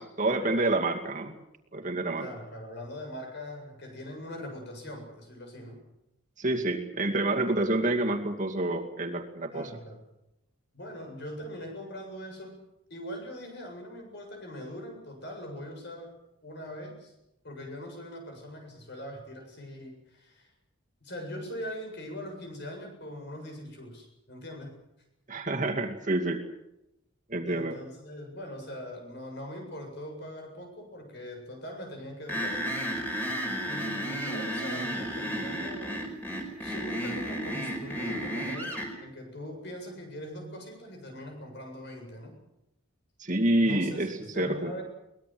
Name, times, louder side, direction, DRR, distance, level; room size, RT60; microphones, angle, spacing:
voice 1, 0.0-1.3 1.7-2.3 6.4-9.7 25.3-26.4 27.3-27.8 43.2-44.7, right 2 dB, 35° right, 2 dB, 2.4 m, -28 dB
voice 2, 2.2-5.8 9.5-10.0 10.7-12.6 12.9-16.1 16.4-17.1 17.4-20.5 21.0-24.7 27.4-33.0 33.6-36.0 36.6-38.7 39.0-42.3 43.6-44.8, left 1 dB, 55° left, 4 dB, 7.6 m, -41 dB
sound 1, 32.3-38.9, equal, 10° left, 4.9 m, -33 dB
23.5 x 20.0 x 7.8 m, 0.89 s
head